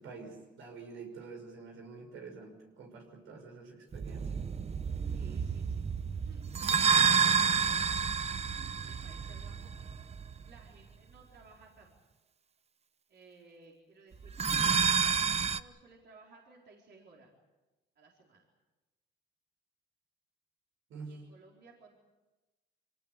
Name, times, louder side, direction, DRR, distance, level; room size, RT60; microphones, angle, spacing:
voice 1, 0.0-4.3 20.9-21.1, right 4 dB, 85° right, 2 dB, 6.1 m, -47 dB
sound 1, 3.9-10.6 14.2-15.6, right 6 dB, 30° right, 0.8 m, -29 dB
voice 2, 5.1-5.9 6.2-7.8 8.8-9.7 10.4-11.9 13.1-17.3 18.0-18.5 21.1-22.0, right 3 dB, 60° right, -1 dB, 4.3 m, -58 dB
24.5 x 18.5 x 8.3 m, 1.1 s
cardioid pair, 90°, 20 cm